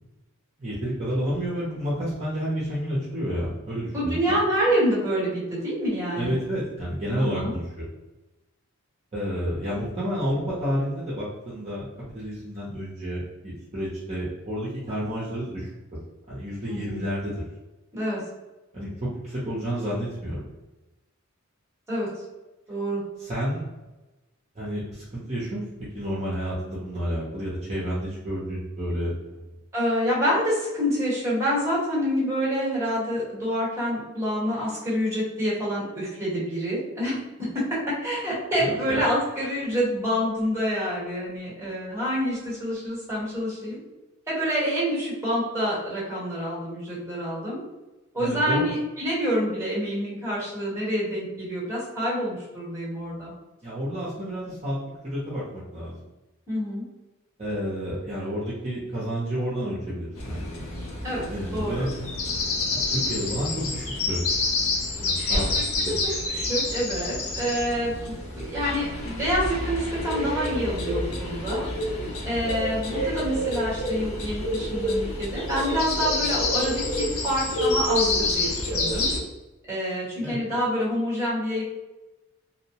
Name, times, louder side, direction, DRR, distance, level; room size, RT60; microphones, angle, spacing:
voice 1, 0.6-4.3 6.2-7.9 9.1-15.7 16.3-17.4 18.7-20.4 23.2-23.7 24.5-25.6 25.9-29.4 38.6-39.0 48.2-48.7 53.6-56.0 57.4-60.4 61.3-61.9 62.7-64.2 65.0-65.5 65.7-66.2 80.2-80.4, equal, 30° right, -8 dB, 0.6 m, -30 dB
voice 2, 3.9-6.3 7.2-7.5 16.7-17.0 17.9-18.2 21.9-22.1 22.7-23.0 29.7-43.8 44.3-47.6 48.1-53.3 56.5-56.8 61.0-61.2 61.5-61.9 65.5-66.0 66.3-71.7 72.2-79.1 79.7-81.6, equal, 15° right, -6 dB, 1.0 m, -27 dB
sound 1, 60.2-79.2, left 2 dB, 70° left, 0.6 m, -28 dB
2.6 x 2.1 x 2.8 m, 1.1 s
head